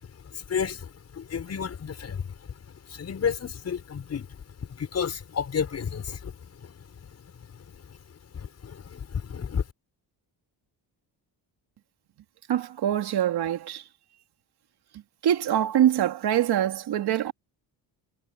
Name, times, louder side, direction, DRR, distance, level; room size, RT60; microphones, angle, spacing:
voice 1, 0.2-2.3 2.5-4.4 4.7-6.9 7.1-7.2 7.6-7.9 8.3-9.6, left 7 dB, 35° left, 6.5 m, -32 dB
voice 2, 12.5-13.8 15.2-17.3, right 11 dB, 65° right, 2.8 m, -24 dB
cardioid pair, 180°, 42 cm